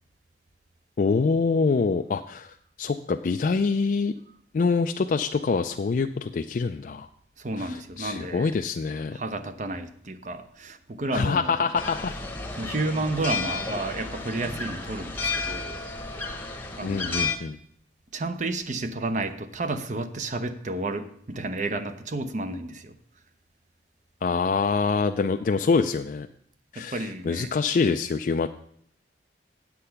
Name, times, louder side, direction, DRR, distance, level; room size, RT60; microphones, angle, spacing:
voice 1, 1.0-4.1 4.5-7.1 7.6-9.2 11.1-12.1 16.8-17.6 24.2-26.3 26.7-28.5, left 4 dB, 50° left, 6 dB, 0.3 m, -25 dB
voice 2, 7.4-8.5 9.1-11.7 12.6-15.8 16.8-17.3 18.1-22.9 26.8-27.5, right 2 dB, 45° right, 10 dB, 0.7 m, -31 dB
sound 1, 11.7-17.4, left 4 dB, 10° left, 0.9 m, -32 dB
8.4 x 7.7 x 5.7 m, 0.65 s
head